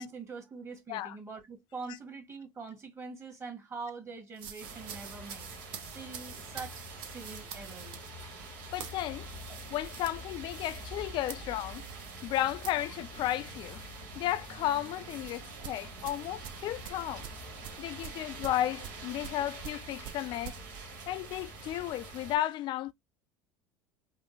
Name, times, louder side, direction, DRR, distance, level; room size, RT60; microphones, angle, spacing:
voice 1, 0.0-5.5 5.8-8.0 9.5-9.6, right 4 dB, 25° right, 1.5 m, -44 dB
sound 1, 4.4-14.0 14.3-14.6 15.6-20.6, right 9 dB, 50° right, 0.6 m, -47 dB
sound 2, 4.6-22.4, right 2 dB, 75° right, 1.3 m, -45 dB
voice 2, 8.7-9.3 9.7-11.9 12.2-13.9 14.2-17.3 17.8-20.6 21.1-22.9, left 13 dB, 50° left, 0.4 m, -33 dB
3.5 x 2.0 x 3.1 m
hypercardioid pair, 75°, 10 cm